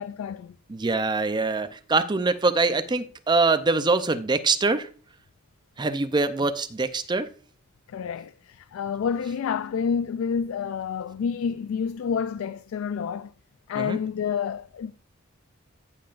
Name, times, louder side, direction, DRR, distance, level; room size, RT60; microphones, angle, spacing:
voice 1, 0.0-0.6 7.9-13.3 13.7-14.9, left 6 dB, 75° left, 0.3 m, -29 dB
voice 2, 0.7-4.9 5.8-7.3 13.7-14.0, right 3 dB, 20° right, 0.5 m, -24 dB
15.0 x 5.7 x 2.5 m
head